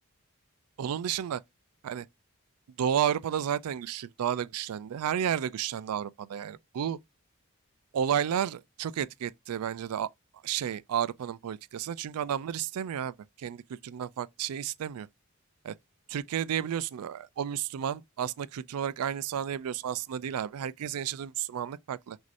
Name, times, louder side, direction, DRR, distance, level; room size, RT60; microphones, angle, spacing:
voice 1, 0.8-1.4 1.8-2.1 2.8-7.0 7.9-10.1 10.4-15.1 15.6-15.7 16.1-22.2, right 9 dB, 80° right, 0.3 m, -32 dB
6.1 x 2.7 x 2.5 m
head